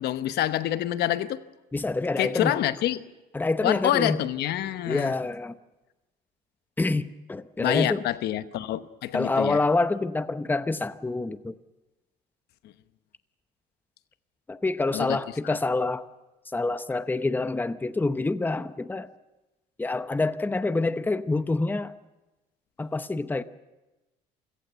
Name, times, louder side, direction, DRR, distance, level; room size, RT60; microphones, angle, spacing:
voice 1, 0.0-1.4 2.2-3.0 3.6-5.1 7.6-9.6 12.6-12.7 14.9-15.2 15.4-15.5, left 13 dB, 75° left, 1.0 m, -27 dB
voice 2, 1.7-2.6 3.3-4.2 4.9-5.6 6.8-8.0 9.1-11.5 14.5-16.1 16.5-19.1 19.8-21.9 22.8-23.4, left 3 dB, 10° left, 0.8 m, -27 dB
27.5 x 17.0 x 6.9 m
cardioid pair, 110°, 17 cm